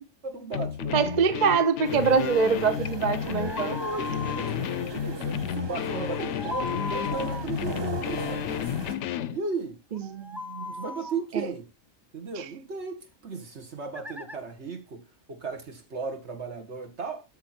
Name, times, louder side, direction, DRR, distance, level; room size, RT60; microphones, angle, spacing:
voice 1, 0.2-1.0 3.4-8.6 9.3-9.8 10.6-11.7 12.1-17.2, right 4 dB, 60° right, 1.9 m, -36 dB
sound 1, 0.5-9.4, left 9 dB, 70° left, 0.9 m, -32 dB
voice 2, 0.9-3.7 9.9-10.7 11.3-11.5 12.4-12.5, right 5 dB, 45° right, 0.6 m, -24 dB
sound 2, 1.8-9.0, right 2 dB, 20° right, 1.1 m, -38 dB
sound 3, 3.2-4.5 6.1-7.5 9.9-11.2 13.9-14.4, left 2 dB, 5° right, 0.3 m, -37 dB
12.5 x 4.3 x 4.3 m
omnidirectional pair, 1.3 m